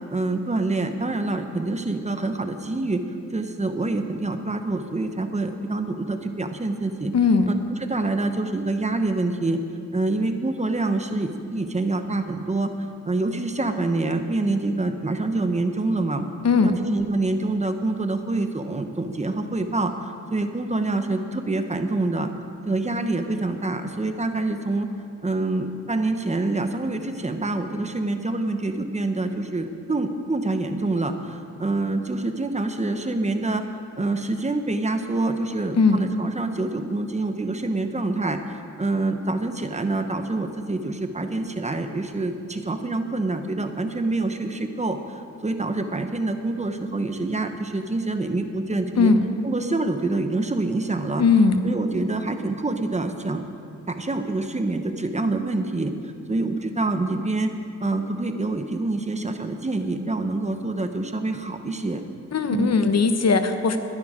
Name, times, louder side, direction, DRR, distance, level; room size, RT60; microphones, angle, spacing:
voice 1, 0.1-3.0 3.3-7.1 7.5-7.6 7.9-9.6 9.9-12.7 13.1-16.2 16.6-22.3 22.6-24.9 25.2-33.6 34.0-49.1 49.4-51.2 51.6-53.4 53.9-57.5 57.8-62.0 62.5-62.7, right 2 dB, 20° right, 7 dB, 0.9 m, -26 dB
voice 2, 7.1-7.5 16.4-16.8 35.8-36.0 49.0-49.3 51.2-51.6 62.3-63.8, left 4 dB, 55° left, 8 dB, 1.0 m, -19 dB
21.0 x 11.5 x 5.0 m, 2.4 s
wide cardioid pair, 130°, 31 cm